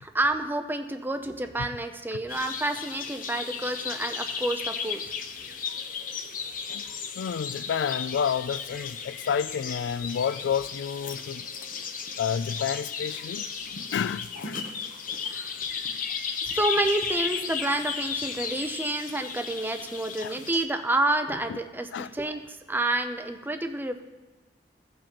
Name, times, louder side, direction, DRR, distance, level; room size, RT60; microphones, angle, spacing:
voice 1, 0.0-5.0 15.3-15.5 16.4-24.0, right 2 dB, 10° right, 0.5 m, -29 dB
sound 1, 2.3-20.6, left 6 dB, 50° left, 0.9 m, -35 dB
voice 2, 7.2-11.5 12.2-14.6 15.2-15.5 20.2-20.3 21.5-21.6 21.9-22.1, left 7 dB, 80° left, 0.3 m, -30 dB
16.5 x 7.2 x 3.0 m
head